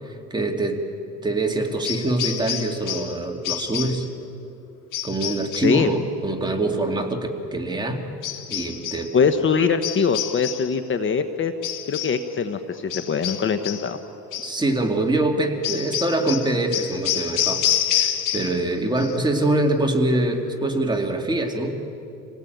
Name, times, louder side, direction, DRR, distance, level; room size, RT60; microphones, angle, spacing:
voice 1, 0.3-0.8 1.2-4.0 5.0-8.1 8.5-9.1 14.4-17.6 17.9-21.8, right 2 dB, 15° right, 2 dB, 2.6 m, -24 dB
sound 1, 1.8-3.2 3.4-4.1 4.9-5.8 8.2-9.1 9.8-10.7 11.6-12.2 12.9-13.9 14.3-14.6 15.6-18.7 19.0-19.4, left 11 dB, 75° left, 1.8 m, -28 dB
voice 2, 9.1-11.5 11.9-14.0, left 6 dB, 40° left, 9 dB, 1.1 m, -22 dB
27.0 x 18.5 x 9.3 m, 2.8 s
cardioid pair, 120°, 32 cm